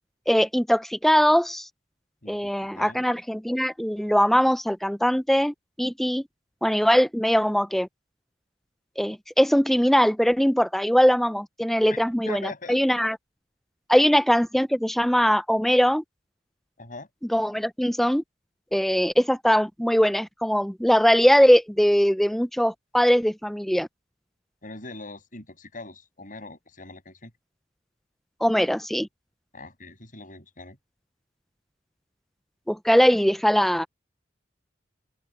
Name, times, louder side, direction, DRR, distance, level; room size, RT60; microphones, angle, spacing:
voice 1, 0.3-1.7 2.3-6.2 6.6-7.9 9.0-13.2 13.9-16.0 17.3-18.2 18.7-23.9 28.4-29.1 32.7-33.9, equal, ahead, 0.5 m, -21 dB
voice 2, 2.2-3.0 11.9-12.8 16.8-17.1 24.6-27.3 29.5-30.8, left 3 dB, 45° left, 7.5 m, -41 dB
open air
head